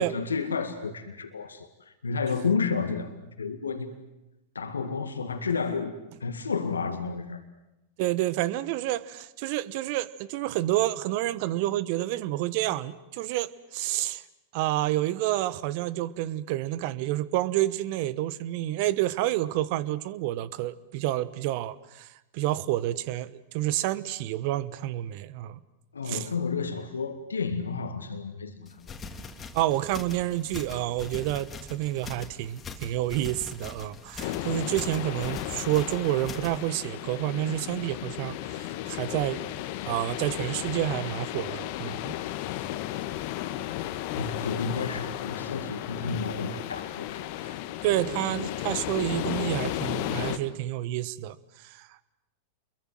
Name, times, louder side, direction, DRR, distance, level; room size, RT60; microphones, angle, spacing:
voice 1, 0.0-4.0 4.6-5.9 6.2-7.4 25.9-28.7 44.2-47.5, left 5 dB, 85° left, 8 dB, 2.0 m, -31 dB
voice 2, 8.0-14.2 14.5-25.6 26.0-26.3 29.5-39.4 39.9-42.1 47.4-47.5 47.8-52.0, right 14 dB, 55° right, 17 dB, 1.2 m, -29 dB
sound 1, 28.7-36.7, left 4 dB, 20° left, 2.8 m, -42 dB
sound 2, 34.2-50.4, left 14 dB, 55° left, 1.6 m, -34 dB
29.0 x 22.5 x 7.8 m, 0.91 s
hypercardioid pair, 100°, 0 cm